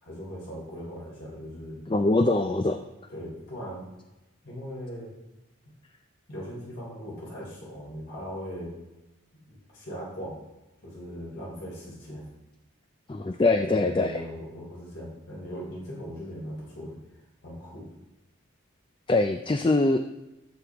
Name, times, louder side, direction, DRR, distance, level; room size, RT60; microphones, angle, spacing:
voice 1, 0.0-2.0 3.1-3.9 4.4-5.1 6.3-8.8 9.4-10.4 10.8-12.3 13.6-17.0 17.4-17.9, equal, 65° left, -6 dB, 3.5 m, -39 dB
voice 2, 1.9-2.8 13.1-14.1 19.1-20.0, left 2 dB, 25° left, 6 dB, 0.4 m, -23 dB
14.5 x 7.6 x 3.5 m, 1.0 s
head